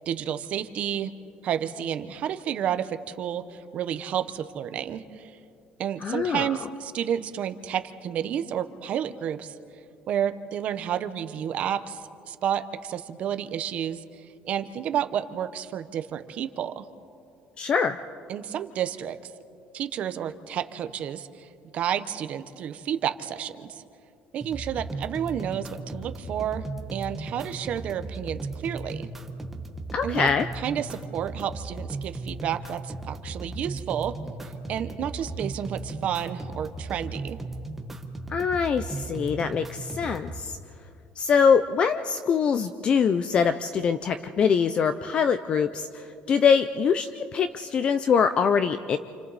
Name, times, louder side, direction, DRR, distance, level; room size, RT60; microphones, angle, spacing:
voice 1, 0.1-1.1 1.4-5.4 5.8-9.6 10.1-14.0 14.4-16.8 18.3-19.3 19.7-23.8 24.3-29.1 30.0-30.3 30.6-34.1 34.7-37.4, right 9 dB, 40° right, 10 dB, 0.9 m, -31 dB
voice 2, 6.0-6.5 17.6-18.0 29.9-30.5 38.3-40.5 41.2-49.0, left 6 dB, 30° left, 11 dB, 0.5 m, -23 dB
sound 1, 24.4-40.4, right 2 dB, 5° right, 1.1 m, -36 dB
29.0 x 28.5 x 4.1 m, 2.6 s
cardioid pair, 180°, 3 cm